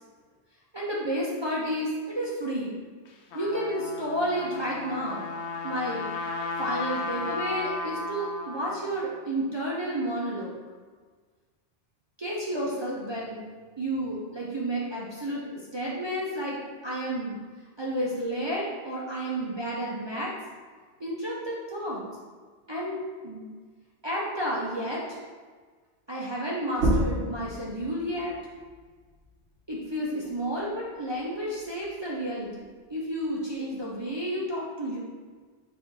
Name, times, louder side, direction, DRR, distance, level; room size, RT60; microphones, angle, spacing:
voice 1, 0.7-2.8 3.3-5.3 5.6-6.1 6.6-10.6 12.2-13.4 13.8-16.6 16.8-17.4 17.8-20.3 21.0-22.0 22.7-23.0 23.2-23.4 24.0-25.2 26.1-28.3 29.7-35.0, right 1 dB, 35° right, -6 dB, 0.4 m, -31 dB
Trumpet, 3.1-9.0, left 3 dB, 80° left, 0.9 m, -34 dB
sound 1, 26.7-31.9 32.3-34.1, right 1 dB, 65° right, 1.1 m, -33 dB
4.1 x 2.5 x 4.5 m, 1.5 s
omnidirectional pair, 1.1 m